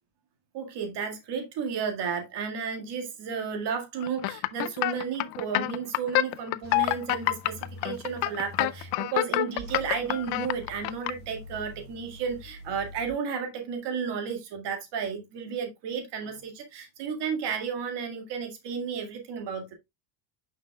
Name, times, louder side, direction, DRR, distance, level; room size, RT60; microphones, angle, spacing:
voice 1, 0.5-19.7, right 6 dB, 60° right, 2.0 m, -33 dB
sound 1, 4.0-11.1, left 19 dB, 65° left, 0.6 m, -26 dB
sound 2, 6.6-8.9 9.6-13.1, left 1 dB, 35° right, 4.7 m, -46 dB
9.2 x 5.9 x 2.3 m
cardioid pair, 120°, 47 cm